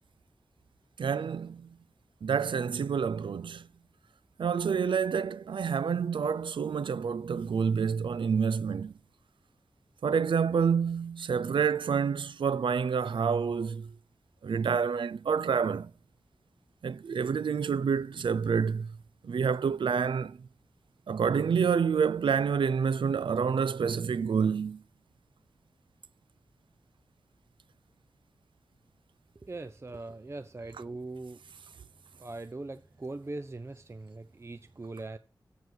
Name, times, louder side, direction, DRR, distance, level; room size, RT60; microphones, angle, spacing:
voice 1, 1.0-1.7 2.2-3.7 4.4-8.9 10.0-13.9 14.4-15.9 16.8-18.9 19.2-20.4 21.1-24.8, right 6 dB, 80° right, 0.4 m, -28 dB
voice 2, 29.3-31.6 32.2-35.2, right 2 dB, 35° right, 0.6 m, -41 dB
7.8 x 6.9 x 8.1 m
wide cardioid pair, 70°, 8 cm